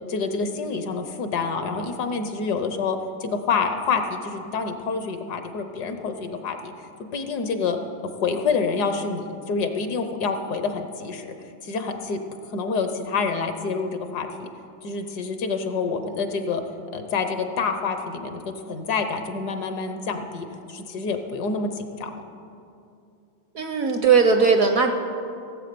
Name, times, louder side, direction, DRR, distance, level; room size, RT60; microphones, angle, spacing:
voice 1, 0.1-6.7 7.1-7.8 8.0-11.3 11.6-12.2 12.5-14.5 14.8-16.6 16.9-22.1, left 4 dB, 65° left, 7 dB, 1.3 m, -27 dB
voice 2, 23.5-24.9, right 5 dB, 60° right, 6 dB, 1.0 m, -18 dB
17.0 x 8.1 x 6.8 m, 2.5 s
omnidirectional pair, 2.1 m